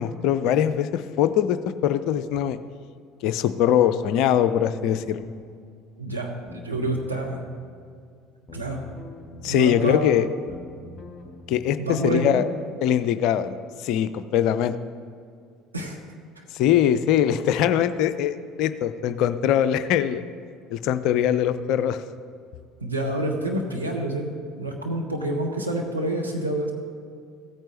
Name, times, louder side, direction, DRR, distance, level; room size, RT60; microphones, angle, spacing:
voice 1, 0.0-2.6 3.2-5.3 9.4-10.3 11.5-12.4 12.8-13.6 13.8-14.7 16.5-20.2 20.7-22.0, left 10 dB, 55° left, 13 dB, 0.4 m, -22 dB
sound 1, 4.5-5.5 6.5-7.5 8.5-9.5 10.5-11.4, left 2 dB, 20° left, 1.4 m, -43 dB
voice 2, 6.0-7.4 8.5-8.8 9.4-10.1 11.8-12.4 15.7-16.0 16.4-16.5 22.8-26.7, right 1 dB, 85° right, 0 dB, 1.0 m, -28 dB
15.0 x 8.9 x 3.1 m, 2.3 s
figure-of-eight pair, 60°, 0 cm